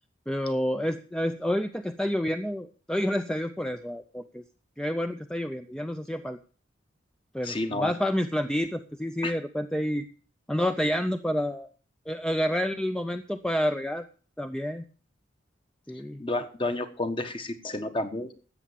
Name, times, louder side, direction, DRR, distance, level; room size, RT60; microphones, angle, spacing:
voice 1, 0.3-4.4 4.8-6.4 7.3-10.0 10.5-11.7 12.1-14.0 14.4-14.8 15.9-16.2, equal, 5° left, 8 dB, 0.5 m, -29 dB
voice 2, 7.4-7.9 9.2-9.3 16.2-18.3, left 2 dB, 25° left, 8 dB, 1.3 m, -31 dB
13.5 x 8.4 x 6.8 m, 0.39 s
head